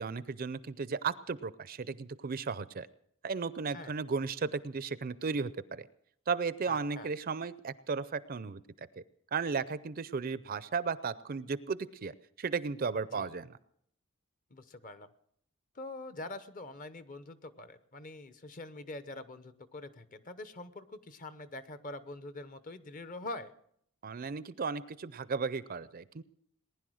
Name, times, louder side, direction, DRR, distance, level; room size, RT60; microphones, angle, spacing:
voice 1, 0.0-2.9 3.2-5.9 6.3-8.6 9.0-9.1 9.3-12.1 12.4-13.6 24.0-26.2, right 5 dB, 45° right, 16 dB, 0.5 m, -35 dB
voice 2, 6.7-7.1 13.1-13.3 14.5-15.1 15.7-23.5, left 2 dB, 40° left, 12 dB, 0.8 m, -44 dB
19.5 x 10.5 x 6.4 m, 0.69 s
head